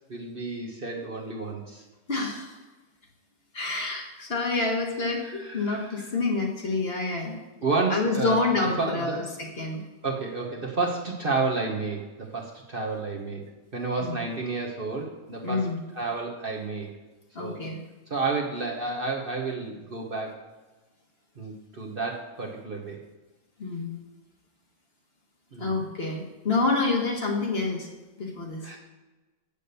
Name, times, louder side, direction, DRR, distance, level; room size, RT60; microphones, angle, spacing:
voice 1, 0.1-1.8 5.2-6.0 7.6-8.4 8.8-9.2 10.0-13.4 13.7-15.7 15.9-16.9 17.4-17.6 18.1-20.4 21.4-23.0 25.5-25.8 28.6-28.8, right 3 dB, 40° right, -1 dB, 1.2 m, -31 dB
voice 2, 2.1-2.5 3.5-7.4 7.9-9.8 14.0-14.2 15.4-15.8 17.3-17.8 23.6-24.0 25.6-27.9 28.2-28.7, left 3 dB, 40° left, 1 dB, 1.5 m, -28 dB
8.5 x 6.8 x 6.7 m, 1.2 s
omnidirectional pair, 1.6 m